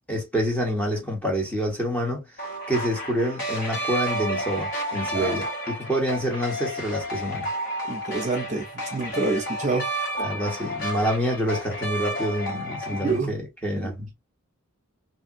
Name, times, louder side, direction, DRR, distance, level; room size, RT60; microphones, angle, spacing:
voice 1, 0.1-2.2 2.7-5.5 5.8-7.5 10.2-14.1, equal, 5° left, 1.3 m, -27 dB
sound 1, 2.4-13.2, right 1 dB, 40° left, 1.8 m, -31 dB
voice 2, 7.9-8.6 8.9-9.9 12.9-13.3 13.8-13.9, right 3 dB, 35° right, 0.9 m, -27 dB
3.3 x 2.8 x 2.8 m
head